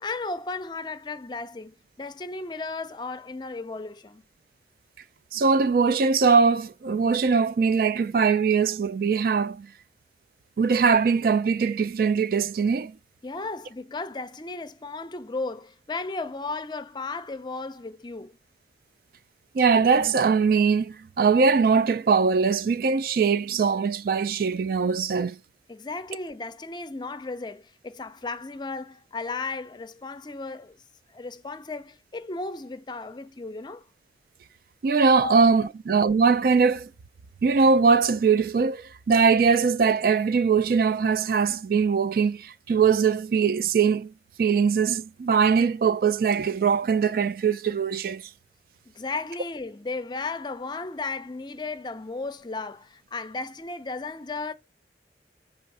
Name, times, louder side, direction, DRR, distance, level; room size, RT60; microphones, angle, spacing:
voice 1, 0.0-4.2 13.2-18.4 25.7-30.8 31.1-33.8 35.2-35.7 48.9-54.5, left 3 dB, 25° left, 0.5 m, -35 dB
voice 2, 5.3-9.7 10.6-12.9 19.5-25.4 34.8-36.9 37.4-44.1 44.4-48.2, right 5 dB, 55° right, 0.3 m, -21 dB
5.6 x 3.4 x 5.3 m
head